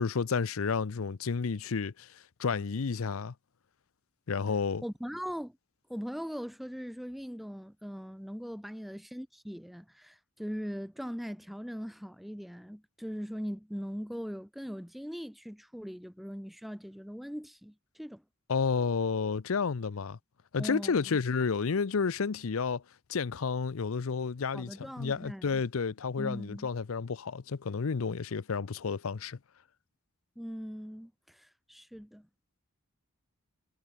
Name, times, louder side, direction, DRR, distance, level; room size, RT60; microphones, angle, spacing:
voice 1, 0.0-3.3 4.3-4.8 18.5-20.2 20.5-22.8 23.1-29.4, left 5 dB, 80° left, 0.6 m, -31 dB
voice 2, 4.8-5.6 5.9-18.2 20.6-21.2 24.5-25.6 26.2-26.7 30.4-32.3, equal, ahead, 0.4 m, -40 dB
head